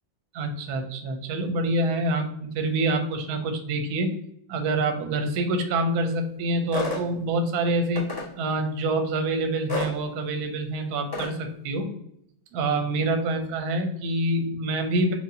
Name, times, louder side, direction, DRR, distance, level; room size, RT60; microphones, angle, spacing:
voice 1, 0.3-4.1 4.5-8.1 8.4-11.9 12.5-15.1, right 2 dB, 70° right, 5 dB, 1.0 m, -26 dB
sound 1, 6.7-7.0 7.9-8.3 9.7-9.9 11.1-11.3, left 3 dB, 15° left, 0.9 m, -29 dB
4.7 x 2.4 x 2.6 m, 0.72 s
omnidirectional pair, 2.1 m